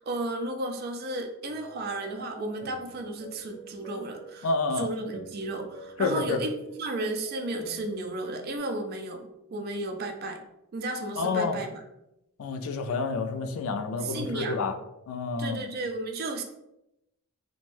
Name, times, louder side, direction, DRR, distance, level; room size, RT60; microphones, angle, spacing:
voice 1, 0.0-4.5 4.7-10.4 10.7-11.8 14.0-14.6 15.4-16.4, right 2 dB, 45° right, 4 dB, 0.3 m, -33 dB
sound 1, 1.5-8.6, right 1 dB, 10° left, 0.7 m, -47 dB
voice 2, 4.4-4.9 6.0-6.4 11.2-11.6 12.4-14.7 15.1-15.7, left 4 dB, 75° left, 7 dB, 0.3 m, -29 dB
2.5 x 2.1 x 3.2 m, 0.87 s
head